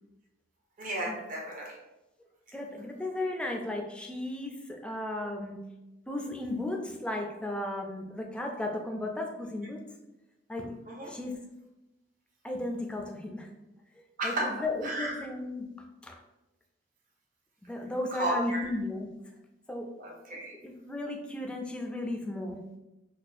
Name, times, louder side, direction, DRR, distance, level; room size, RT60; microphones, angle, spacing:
voice 1, 0.8-1.7 10.9-11.1 14.2-14.5 14.8-15.2 18.1-18.7 20.0-20.5, right 1 dB, 45° right, -2 dB, 0.7 m, -33 dB
voice 2, 2.5-5.7 6.1-9.9 10.5-10.8 11.1-11.4 12.4-13.5 14.2-15.7 16.0-16.2 17.6-19.1 19.7-19.9 20.5-22.6, left 1 dB, 5° left, 2 dB, 0.3 m, -35 dB
4.1 x 2.3 x 2.6 m, 0.97 s
head